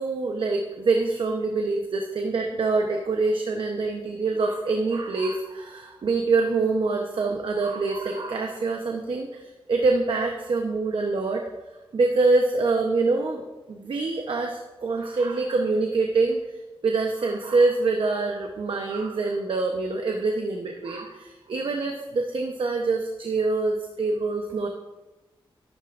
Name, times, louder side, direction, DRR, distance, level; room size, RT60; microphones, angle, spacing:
voice 1, 0.0-11.4 11.9-16.4 16.8-24.7, right 3 dB, 65° right, 2 dB, 0.9 m, -25 dB
13.0 x 12.0 x 2.6 m, 1.1 s
wide cardioid pair, 150°, 9 cm